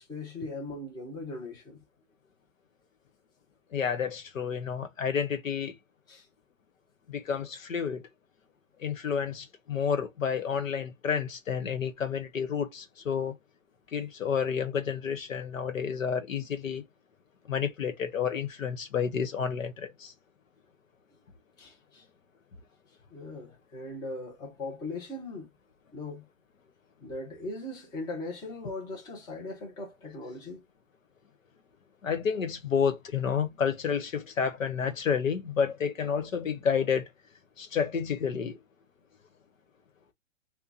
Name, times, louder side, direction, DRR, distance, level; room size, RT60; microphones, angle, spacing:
voice 1, 0.0-1.8 6.1-6.3 21.6-22.0 23.1-25.5 25.9-26.3 27.0-30.6, left 2 dB, 10° left, 0.8 m, -39 dB
voice 2, 3.7-5.8 7.1-8.0 8.8-13.3 13.9-16.8 17.5-20.1 32.0-37.1 37.6-38.6, left 7 dB, 80° left, 1.2 m, -30 dB
2.8 x 2.4 x 3.9 m
hypercardioid pair, 150°, 39 cm